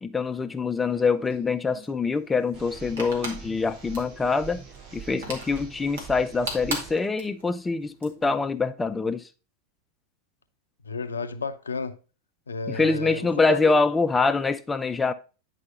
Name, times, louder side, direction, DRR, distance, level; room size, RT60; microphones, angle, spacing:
voice 1, 0.0-4.6 4.9-9.3 12.7-15.1, left 4 dB, 10° left, 0.5 m, -25 dB
sound 1, 0.9-8.3, right 2 dB, 65° right, 2.3 m, -39 dB
sound 2, 2.5-6.9, right 5 dB, 45° right, 4.8 m, -43 dB
voice 2, 10.8-12.0 12.5-13.8, left 4 dB, 75° left, 0.6 m, -32 dB
9.7 x 4.9 x 3.9 m
figure-of-eight pair, 90°, 0 cm